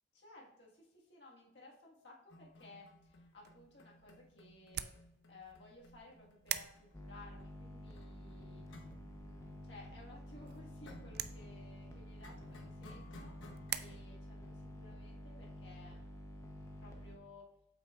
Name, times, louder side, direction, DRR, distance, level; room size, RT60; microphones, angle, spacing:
voice 1, 0.1-4.9 5.3-8.6 9.2-13.4 13.8-16.1 16.8-17.4, left 2 dB, 65° left, -3 dB, 1.6 m, -58 dB
sound 1, 2.3-13.7, left 1 dB, 85° left, 0.9 m, -60 dB
sound 2, 3.2-13.8, right 12 dB, 55° right, 0.4 m, -47 dB
sound 3, 6.9-17.2, left 1 dB, 15° left, 0.7 m, -50 dB
7.9 x 5.9 x 2.4 m, 0.85 s
head